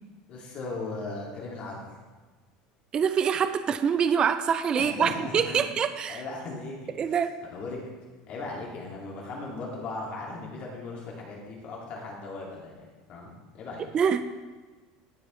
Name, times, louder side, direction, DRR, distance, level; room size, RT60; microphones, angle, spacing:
voice 1, 0.3-1.8 4.8-5.7 6.1-7.1 7.5-7.8 8.3-13.9, left 3 dB, 45° left, -3 dB, 2.1 m, -37 dB
voice 2, 2.9-6.2 7.0-7.3 13.9-14.2, right 7 dB, 30° right, 10 dB, 0.3 m, -25 dB
11.5 x 4.6 x 3.1 m, 1.4 s
supercardioid pair, 130°, 3 cm